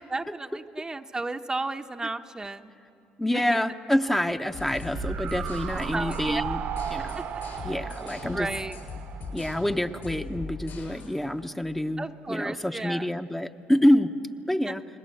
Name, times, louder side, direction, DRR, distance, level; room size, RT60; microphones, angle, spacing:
voice 1, 0.1-2.7 3.3-3.4 5.7-6.4 8.3-8.8 12.0-13.1 14.7-14.8, right 3 dB, 20° right, 6 dB, 0.8 m, -33 dB
voice 2, 3.2-6.6 6.9-7.2 7.6-8.5 9.3-14.1 14.5-14.8, left 1 dB, 10° left, 6 dB, 0.8 m, -27 dB
sound 1, 4.5-11.1, left 4 dB, 60° left, 7.1 m, -40 dB
sound 2, 4.9-10.2 10.5-10.6, right 8 dB, 65° right, 1.1 m, -35 dB
30.0 x 20.0 x 7.7 m, 2.7 s
supercardioid pair, 90°, 4 cm